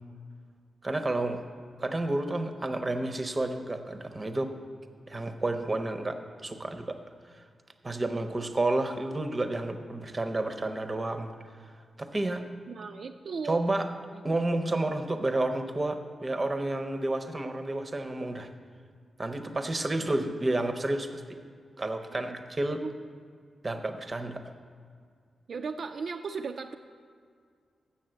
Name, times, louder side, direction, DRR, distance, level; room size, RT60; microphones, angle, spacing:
voice 1, 0.8-1.4 1.8-4.5 5.1-7.0 7.3-7.4 7.8-11.3 11.6-11.7 12.0-12.4 13.4-13.9 14.2-18.5 19.2-21.2 21.8-22.8 23.6-24.4, right 2 dB, 25° right, 7 dB, 0.7 m, -30 dB
voice 2, 8.1-8.5 12.7-13.6 14.1-14.2 20.0-20.3 22.1-22.4 22.8-22.9 25.5-26.7, right 5 dB, 60° right, 4 dB, 0.4 m, -37 dB
7.1 x 7.0 x 7.7 m, 2.1 s
wide cardioid pair, 115°, 0 cm